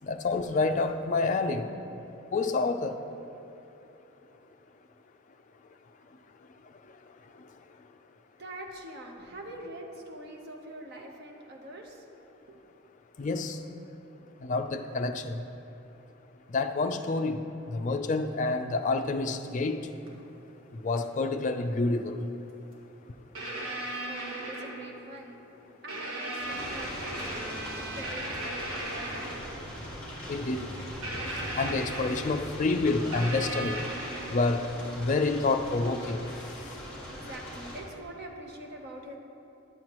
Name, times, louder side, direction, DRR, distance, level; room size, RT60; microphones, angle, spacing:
voice 1, 0.0-1.7 2.3-3.0 13.2-13.6 14.4-15.4 16.5-17.4 17.7-19.8 20.8-22.2 30.3-30.7 31.6-33.8 34.3-34.7 35.0-36.3, left 3 dB, 35° left, 6 dB, 0.4 m, -28 dB
voice 2, 8.4-12.1 12.5-12.6 23.6-25.4 25.8-29.4 37.1-39.2, right 1 dB, 50° right, 1 dB, 0.9 m, -44 dB
sound 1, 20.1-20.2 21.0-21.1 22.7-22.8 23.3-25.0 25.9-29.5 31.0-32.5 33.1-34.6 36.4-36.5, right 1 dB, 70° right, 1.4 m, -37 dB
sound 2, 26.4-37.8, equal, 5° left, 1.6 m, -41 dB
10.5 x 7.7 x 3.0 m, 3.0 s
head